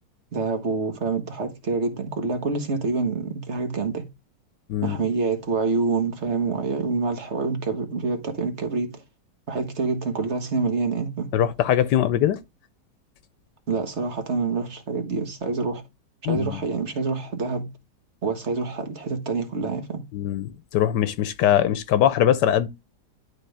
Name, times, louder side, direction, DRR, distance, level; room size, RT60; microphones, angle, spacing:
voice 1, 0.3-4.0 4.8-9.0 9.5-11.3 13.7-15.8 16.2-17.7 18.2-20.0, right 4 dB, 40° right, 1.6 m, -26 dB
voice 2, 11.3-12.4 16.2-16.6 20.1-22.7, left 11 dB, 85° left, 1.3 m, -21 dB
11.0 x 4.3 x 3.4 m
omnidirectional pair, 1.8 m